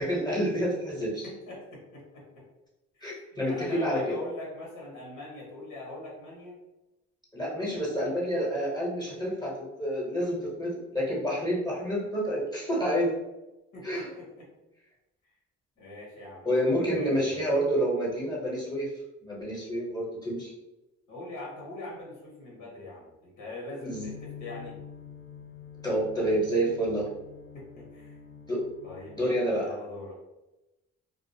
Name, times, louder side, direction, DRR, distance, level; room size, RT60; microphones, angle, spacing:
voice 1, 0.0-1.2 3.0-4.2 7.3-13.2 13.8-14.1 16.4-18.9 19.2-20.5 23.8-24.1 25.8-27.1 28.5-28.6 29.1-29.7, equal, 15° left, -6 dB, 0.8 m, -28 dB
voice 2, 1.2-2.4 2.9-6.6 13.7-14.5 15.8-16.5 16.9-17.4 21.1-24.8 27.5-28.2 28.8-29.2 29.6-30.2, left 2 dB, 85° left, -3 dB, 0.9 m, -42 dB
sound 1, 23.9-29.5, left 7 dB, 45° left, 0.7 m, -47 dB
2.3 x 2.0 x 2.6 m, 0.99 s
cardioid pair, 90°, 30 cm